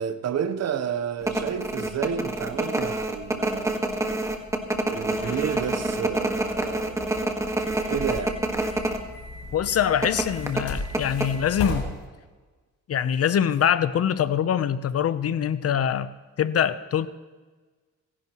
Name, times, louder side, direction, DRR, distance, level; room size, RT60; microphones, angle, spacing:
voice 1, 0.0-3.8 4.9-8.4, right 8 dB, 55° right, 1.0 m, -31 dB
sound 1, 1.2-9.0 9.3-9.4 10.0-11.7 12.0-12.1, right 1 dB, 10° right, 1.6 m, -27 dB
sound 2, 5.1-11.8, left 2 dB, 85° left, 3.8 m, -37 dB
voice 2, 9.5-12.0 12.9-16.1 16.4-17.1, left 9 dB, 50° left, 0.8 m, -24 dB
26.0 x 11.5 x 3.1 m
cardioid pair, 90°, 30 cm